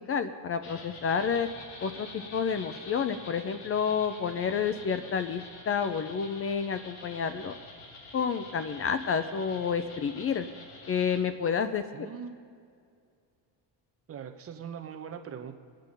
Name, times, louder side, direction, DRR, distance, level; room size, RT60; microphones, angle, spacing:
voice 1, 0.1-1.5 1.8-7.5 8.1-10.5 10.9-12.1, left 6 dB, 35° left, 10 dB, 0.5 m, -29 dB
sound 1, 0.6-11.2, left 2 dB, 75° left, 2.7 m, -47 dB
voice 2, 11.9-12.3 14.1-15.5, right 7 dB, 35° right, 6 dB, 1.0 m, -41 dB
23.5 x 9.1 x 5.3 m, 2.2 s
cardioid pair, 165°, 42 cm